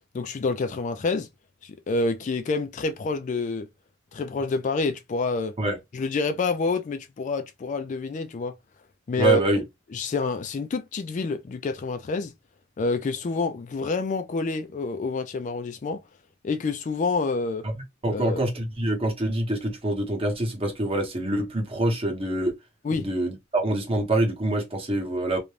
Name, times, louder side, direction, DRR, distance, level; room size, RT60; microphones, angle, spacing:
voice 1, 0.1-1.3 1.6-3.7 4.1-5.5 5.9-8.5 9.1-9.4 9.9-12.3 12.8-16.0 16.4-17.7 18.1-18.4 22.8-23.1, left 3 dB, 40° left, 0.3 m, -27 dB
voice 2, 9.2-9.6 17.6-17.7 18.0-22.5 23.0-25.4, right 2 dB, 30° right, 0.9 m, -25 dB
2.5 x 2.2 x 3.1 m
head